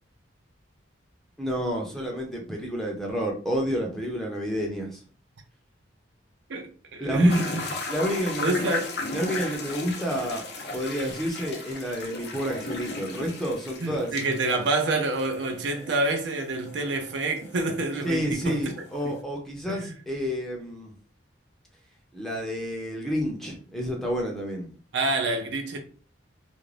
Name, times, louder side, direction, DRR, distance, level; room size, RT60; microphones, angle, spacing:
voice 1, 1.4-5.0 7.0-7.4 7.9-8.6 9.1-10.4 10.7-14.1 18.0-20.9 22.1-24.7, equal, ahead, 0.6 m, -29 dB
voice 2, 6.5-7.7 8.4-8.9 13.8-18.6 19.0-19.2 19.7-19.9 24.9-25.8, right 2 dB, 70° right, 0.5 m, -27 dB
sound 1, 7.3-19.2, left 2 dB, 60° left, 0.6 m, -37 dB
2.5 x 2.1 x 3.2 m
head